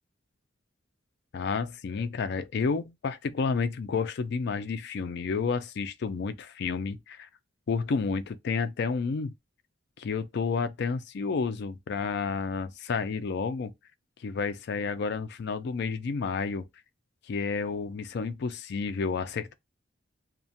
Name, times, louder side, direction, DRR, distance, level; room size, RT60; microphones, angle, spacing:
voice 1, 1.3-7.3 7.7-9.3 10.0-13.7 14.2-16.7 17.3-19.5, left 5 dB, 60° left, 0.4 m, -30 dB
2.4 x 2.1 x 2.6 m
head